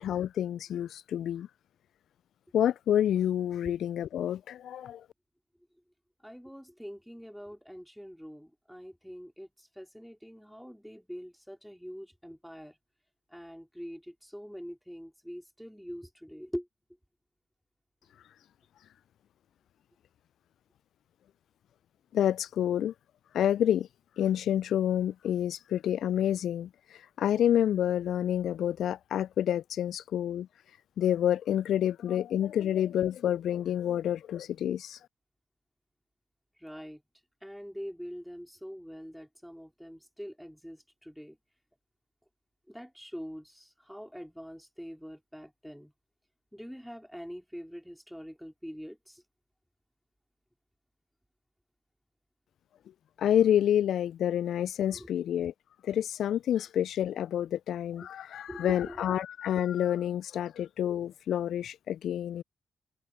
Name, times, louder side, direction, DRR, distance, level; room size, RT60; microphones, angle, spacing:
voice 1, 0.0-1.5 2.5-5.0 22.1-22.9 23.3-23.9 24.2-26.7 27.2-30.5 31.0-35.0 53.2-55.5 55.9-62.4, left 10 dB, 70° left, 0.3 m, -28 dB
voice 2, 6.2-12.8 13.3-16.7 36.6-37.0 37.4-41.4 42.7-45.9 46.5-49.2 54.9-55.1 57.9-58.1 58.5-59.0, equal, ahead, 4.2 m, -44 dB
hypercardioid pair, 40°, 0 cm